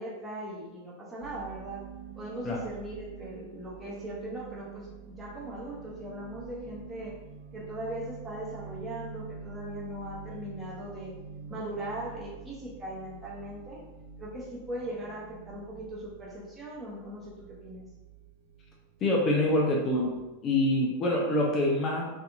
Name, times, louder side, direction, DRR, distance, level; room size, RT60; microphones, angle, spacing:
voice 1, 0.0-1.8 2.1-7.1 7.5-11.1 11.5-13.8 14.2-17.9, right 1 dB, 15° right, -5 dB, 0.8 m, -39 dB
sound 1, 1.2-20.6, right 6 dB, 55° right, 0.4 m, -47 dB
voice 2, 19.0-20.1 20.4-22.1, left 1 dB, 30° left, -2 dB, 0.5 m, -25 dB
2.7 x 2.5 x 2.4 m, 1.0 s
figure-of-eight pair, 90°, 0 cm